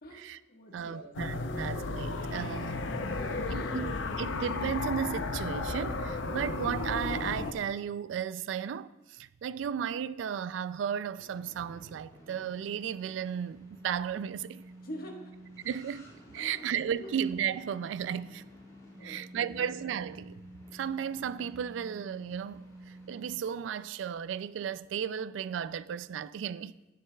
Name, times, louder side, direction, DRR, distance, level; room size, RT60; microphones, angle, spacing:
voice 1, 0.0-1.1 3.1-3.9 14.8-15.3 16.4-16.5 17.0-17.1 19.0-19.7, equal, 55° left, 1.4 m, -45 dB
voice 2, 0.7-2.8 3.5-14.6 15.6-18.4 19.0-20.4 20.7-26.7, right 8 dB, 75° right, 0.3 m, -35 dB
sound 1, 1.1-7.5, left 3 dB, 75° left, 0.6 m, -34 dB
sound 2, 9.7-23.4, right 1 dB, 20° left, 3.5 m, -51 dB
11.0 x 10.5 x 2.3 m
head